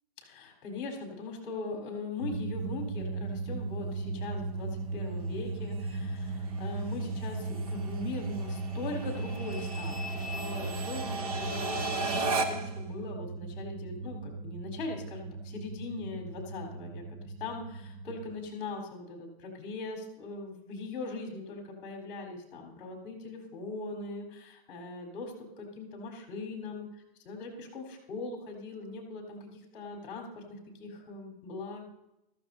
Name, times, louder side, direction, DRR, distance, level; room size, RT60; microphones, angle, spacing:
voice 1, 0.2-26.9 27.2-31.9, left 3 dB, 30° left, 1 dB, 3.9 m, -40 dB
sound 1, 2.2-18.3, right 3 dB, 20° right, 0.5 m, -37 dB
sound 2, 2.6-12.8, right 2 dB, 40° right, 1.0 m, -37 dB
15.0 x 14.0 x 2.7 m, 0.86 s
hypercardioid pair, 175°, 30 cm